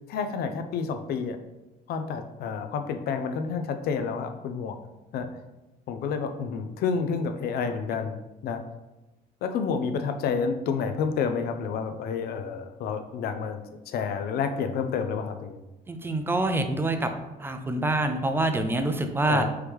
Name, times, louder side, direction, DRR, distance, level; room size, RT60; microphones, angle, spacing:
voice 1, 0.1-1.4 1.9-4.8 5.1-5.3 5.9-8.1 8.4-8.6 9.4-13.6 13.9-15.6 19.3-19.5, left 6 dB, 65° left, 8 dB, 0.5 m, -29 dB
voice 2, 15.9-17.1 17.4-19.5, right 2 dB, 15° right, 7 dB, 0.4 m, -26 dB
4.6 x 3.2 x 3.4 m, 1.0 s
cardioid pair, 110°, 17 cm